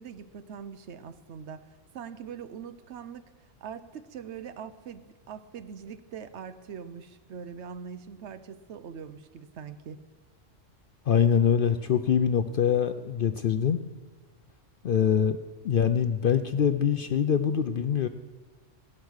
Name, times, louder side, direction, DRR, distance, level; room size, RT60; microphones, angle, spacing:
voice 1, 0.0-3.3 3.6-10.0, right 7 dB, 65° right, 12 dB, 0.9 m, -42 dB
voice 2, 11.1-13.8 14.8-15.4 15.6-18.1, left 8 dB, 60° left, 10 dB, 0.5 m, -24 dB
16.5 x 8.2 x 6.3 m, 1.4 s
omnidirectional pair, 1.3 m